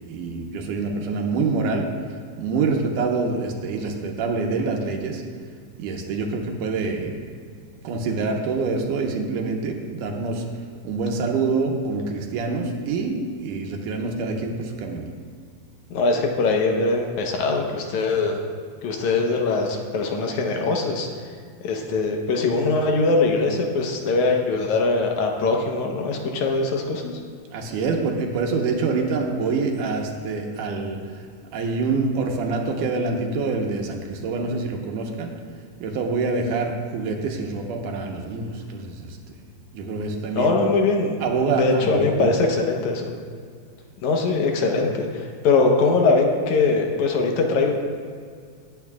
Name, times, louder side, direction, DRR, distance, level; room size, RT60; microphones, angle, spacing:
voice 1, 0.1-1.9 2.4-5.2 5.8-7.2 7.8-10.4 10.8-15.1 27.5-31.0 31.5-35.3 35.8-39.2 39.7-40.6 41.2-42.3, right 4 dB, 70° right, 2 dB, 2.4 m, -26 dB
voice 2, 15.9-18.4 18.8-21.1 21.6-27.1 40.4-41.1 41.6-43.1 44.0-47.7, left 3 dB, 70° left, 2 dB, 2.1 m, -22 dB
19.5 x 8.9 x 2.4 m, 2.1 s
omnidirectional pair, 4.1 m